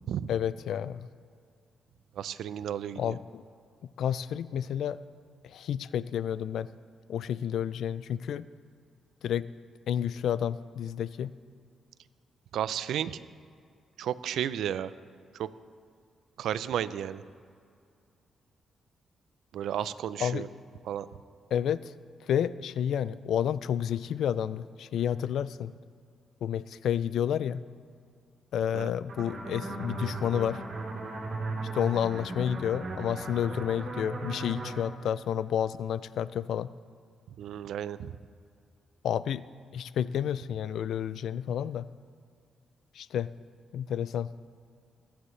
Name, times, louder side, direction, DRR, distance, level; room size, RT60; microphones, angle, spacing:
voice 1, 0.3-1.1 3.0-3.4 4.0-5.0 5.4-6.7 7.1-8.5 9.2-9.5 9.9-11.3 20.2-20.5 21.5-21.9 22.3-25.7 26.4-27.6 28.5-30.6 31.7-36.7 39.0-39.4 39.7-41.9 42.9-43.3 43.7-44.3, left 9 dB, 80° left, 17 dB, 0.3 m, -30 dB
voice 2, 2.2-3.1 12.5-13.2 14.0-14.9 15.3-15.5 16.4-17.2 19.5-20.5 20.9-21.1 28.7-28.9 37.4-38.2, right 10 dB, 85° right, 15 dB, 0.4 m, -33 dB
sound 1, 29.1-34.7, right 2 dB, 50° right, 3.8 m, -37 dB
22.0 x 10.0 x 3.2 m, 2.3 s
cardioid pair, 80°, 0 cm